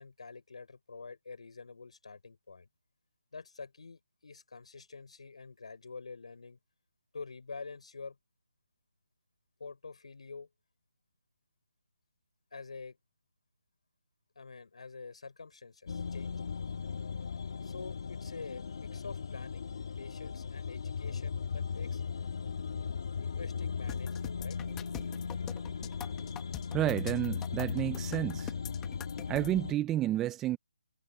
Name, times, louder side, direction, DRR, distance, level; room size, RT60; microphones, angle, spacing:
voice 1, 0.0-2.7 3.3-6.6 7.1-8.2 9.6-10.5 12.5-13.0 14.4-16.4 17.6-19.7 20.0-22.0 23.2-24.6, left 4 dB, 65° left, 5.7 m, -47 dB
sound 1, 15.9-29.7, left 6 dB, 45° left, 1.7 m, -37 dB
sound 2, 23.9-29.5, left 12 dB, 10° left, 1.1 m, -45 dB
voice 2, 26.7-28.5 29.3-30.6, right 13 dB, 5° right, 0.3 m, -30 dB
hypercardioid pair, 170°, 4 cm